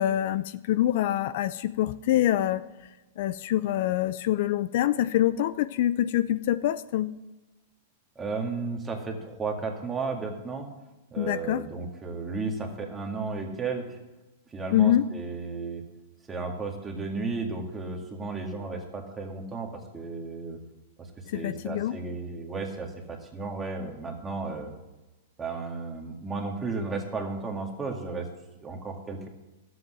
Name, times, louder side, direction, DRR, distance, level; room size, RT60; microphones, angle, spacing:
voice 1, 0.0-2.6 3.2-7.1 11.2-11.6 14.7-15.0 21.3-22.0, left 12 dB, 55° left, 14 dB, 0.4 m, -25 dB
voice 2, 8.2-10.7 11.1-14.0 14.5-15.8 16.3-20.6 21.3-24.7 25.4-28.3 28.6-29.3, right 4 dB, 15° right, 1 dB, 2.0 m, -34 dB
12.5 x 8.0 x 7.7 m, 1.1 s
hypercardioid pair, 150°, 0 cm